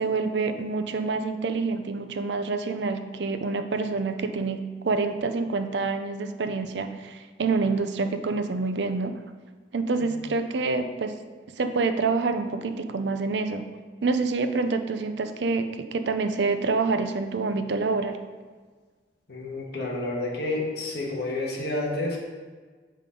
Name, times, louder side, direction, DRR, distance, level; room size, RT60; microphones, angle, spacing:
voice 1, 0.0-9.1 9.7-11.1 11.6-13.6 14.0-18.2, right 4 dB, 75° right, 8 dB, 0.5 m, -27 dB
voice 2, 19.3-22.2, left 2 dB, 65° left, -2 dB, 1.5 m, -29 dB
7.5 x 5.2 x 3.7 m, 1.5 s
head